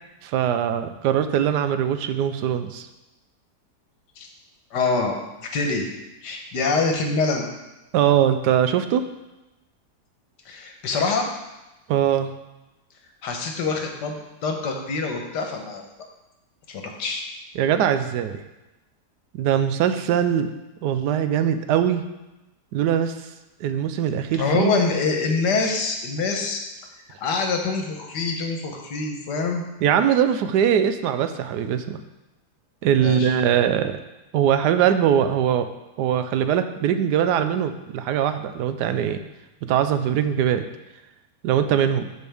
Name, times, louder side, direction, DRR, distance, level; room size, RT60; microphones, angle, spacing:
voice 1, 0.2-2.9 7.9-9.0 11.9-12.3 17.6-18.4 19.3-20.5 20.8-22.0 22.7-23.1 23.6-24.7 29.8-32.0 32.8-34.0 34.3-35.7 36.0-39.2 39.6-40.6 41.4-42.1, right 9 dB, 80° right, 9 dB, 1.2 m, -21 dB
voice 2, 4.7-5.9 6.2-7.5 10.4-11.3 13.2-15.8 16.7-17.2 24.3-26.6 26.9-29.6 33.0-33.3, left 4 dB, 85° left, 3 dB, 1.6 m, -25 dB
13.0 x 4.5 x 3.5 m, 1.0 s
omnidirectional pair, 1.8 m